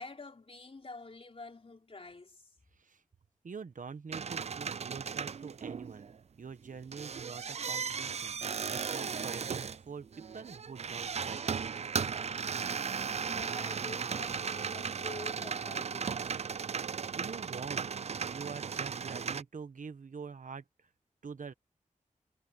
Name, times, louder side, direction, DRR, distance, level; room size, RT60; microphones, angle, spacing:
voice 1, 0.0-2.5 13.2-16.3, left 3 dB, 45° left, 3.4 m, -48 dB
voice 2, 3.4-6.1 6.4-11.9 17.1-17.9 18.2-20.6 21.2-21.5, right 5 dB, 70° right, 1.3 m, -45 dB
sound 1, 4.1-6.2 6.6-19.4, right 6 dB, 50° right, 0.4 m, -36 dB
wide cardioid pair, 60°, 14 cm